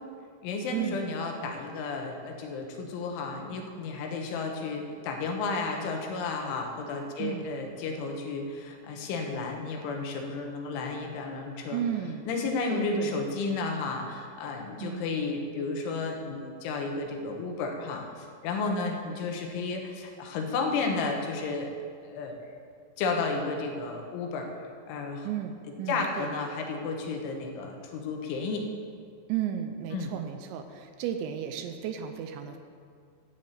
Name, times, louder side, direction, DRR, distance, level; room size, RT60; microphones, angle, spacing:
voice 1, 0.4-11.8 12.3-21.7 22.0-22.4 23.0-24.5 24.9-25.3 25.9-28.7 29.9-30.1, left 4 dB, 80° left, 2 dB, 3.7 m, -32 dB
voice 2, 11.7-12.3 12.7-13.2 14.8-15.1 18.6-18.9 25.2-26.3 29.3-32.6, right 9 dB, 80° right, 7 dB, 2.9 m, -34 dB
11.5 x 7.6 x 8.1 m, 2.2 s
omnidirectional pair, 5.5 m